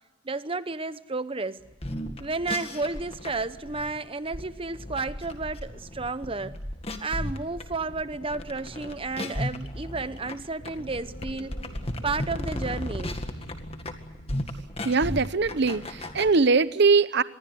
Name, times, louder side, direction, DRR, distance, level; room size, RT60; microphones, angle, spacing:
voice 1, 0.2-1.6 2.2-6.6 7.0-11.6 12.0-13.2, right 3 dB, 25° right, 13 dB, 0.9 m, -32 dB
sound 1, 1.7-16.3, left 1 dB, 30° left, 1.9 m, -35 dB
sound 2, 10.6-14.9, equal, 60° left, 6.9 m, -44 dB
voice 2, 14.8-17.2, right 4 dB, 55° right, 15 dB, 0.8 m, -21 dB
26.5 x 21.5 x 7.8 m, 1.1 s
head